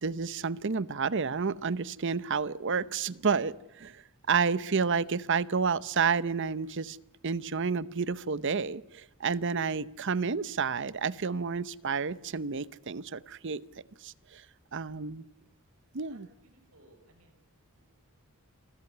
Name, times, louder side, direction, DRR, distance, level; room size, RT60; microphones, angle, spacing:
voice 1, 0.0-4.0 4.3-7.0 7.2-13.6 14.0-14.4 14.7-15.2 15.9-16.3, right 5 dB, 55° right, 17 dB, 0.8 m, -30 dB
voice 2, 16.1-17.4 17.8-18.0, right 2 dB, 90° right, 4 dB, 6.1 m, -61 dB
28.0 x 13.5 x 9.6 m, 0.90 s
head